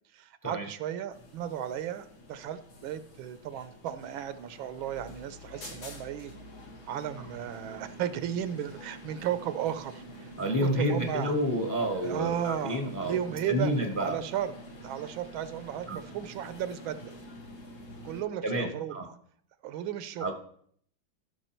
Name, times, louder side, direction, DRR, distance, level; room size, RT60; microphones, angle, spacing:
voice 1, 0.1-6.3 6.9-11.4 12.0-13.7 14.0-14.5 14.8-17.1 18.0-19.2 19.6-20.3, right 10 dB, 80° right, 13 dB, 1.5 m, -35 dB
sound 1, 1.1-18.2, equal, 75° left, 2.7 m, -47 dB
voice 2, 10.4-13.2 13.5-14.3 15.9-16.0 18.4-19.1 20.2-20.3, equal, 15° left, 5 dB, 0.7 m, -29 dB
14.5 x 6.1 x 4.4 m, 0.63 s
omnidirectional pair, 2.2 m